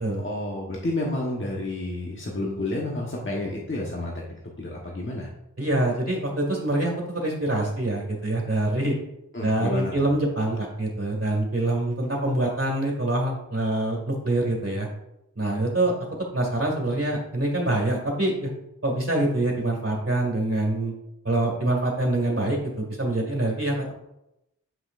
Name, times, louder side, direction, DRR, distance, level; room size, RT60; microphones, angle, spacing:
voice 1, 0.0-4.1 4.6-5.3 9.3-10.1, left 2 dB, 35° left, -3 dB, 1.2 m, -30 dB
voice 2, 5.6-9.0 9.4-14.9 15.4-15.9 16.3-18.5 18.8-20.9 21.2-23.9, right 1 dB, 40° right, -3 dB, 1.8 m, -25 dB
7.6 x 6.0 x 2.5 m, 0.86 s
wide cardioid pair, 60°, 33 cm